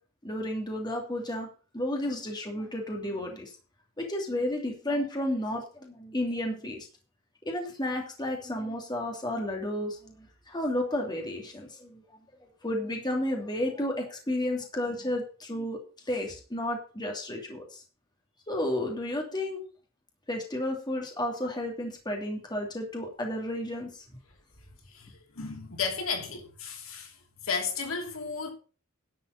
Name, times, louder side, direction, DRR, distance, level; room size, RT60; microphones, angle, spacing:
voice 1, 0.2-1.5 1.7-3.5 4.0-6.9 7.4-12.0 12.4-15.8 16.0-17.8 18.5-19.6 20.3-24.2, left 1 dB, 20° left, 2.8 m, -32 dB
voice 2, 25.3-27.1 27.4-28.5, left 5 dB, 85° left, 2.9 m, -33 dB
11.0 x 5.8 x 6.6 m
head